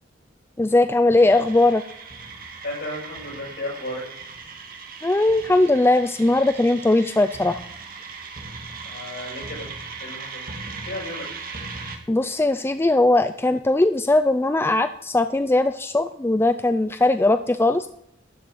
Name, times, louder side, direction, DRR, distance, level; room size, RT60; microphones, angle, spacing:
voice 1, 0.6-1.8 5.0-7.6 12.1-17.9, left 2 dB, 10° left, 10 dB, 0.4 m, -19 dB
sound 1, 1.2-12.0, right 4 dB, 50° right, 2.0 m, -38 dB
voice 2, 2.6-4.2 8.8-9.7 10.0-10.4 10.8-11.3, left 1 dB, 55° left, -3 dB, 7.1 m, -34 dB
12.5 x 6.4 x 9.6 m, 0.75 s
head